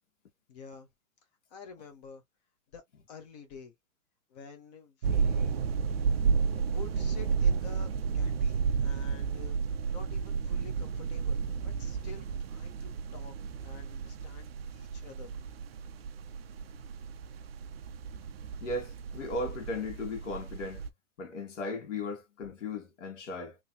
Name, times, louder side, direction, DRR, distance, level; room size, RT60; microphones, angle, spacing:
voice 1, 0.5-0.9 1.5-2.2 2.7-3.7 4.3-5.6 6.7-9.6 9.9-13.4 13.6-15.3, left 5 dB, 30° left, 1.1 m, -49 dB
sound 1, 5.0-20.9, right 5 dB, 45° right, 0.7 m, -32 dB
voice 2, 18.6-20.8 21.2-23.6, left 2 dB, 60° left, 2.1 m, -36 dB
3.9 x 3.0 x 2.2 m
hypercardioid pair, 155°, 41 cm